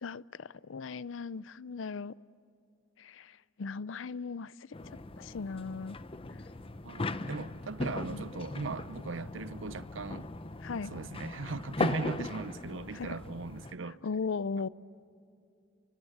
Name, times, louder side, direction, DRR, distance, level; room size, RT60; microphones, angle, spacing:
voice 1, 0.0-2.1 3.0-4.5 4.9-6.0 8.0-8.3 10.6-10.9 12.9-13.2 13.9-14.7, left 5 dB, 70° left, 0.5 m, -38 dB
sound 1, 4.7-13.7, left 2 dB, 30° left, 0.8 m, -38 dB
voice 2, 6.8-10.3 10.9-14.0, right 3 dB, 70° right, 0.8 m, -38 dB
29.5 x 24.0 x 8.1 m
head